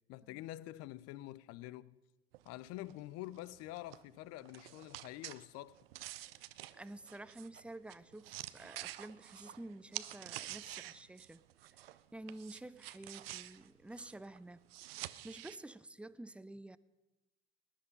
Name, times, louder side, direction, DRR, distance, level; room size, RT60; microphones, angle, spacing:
voice 1, 0.1-2.0 2.5-5.8, left 16 dB, 55° left, 0.5 m, -47 dB
sound 1, 2.3-12.0 12.3-15.6, right 15 dB, 75° right, 0.6 m, -49 dB
voice 2, 6.8-11.4 11.8-11.9 12.1-16.8, right 1 dB, 5° right, 0.5 m, -50 dB
19.0 x 10.0 x 5.3 m
figure-of-eight pair, 60°, 30 cm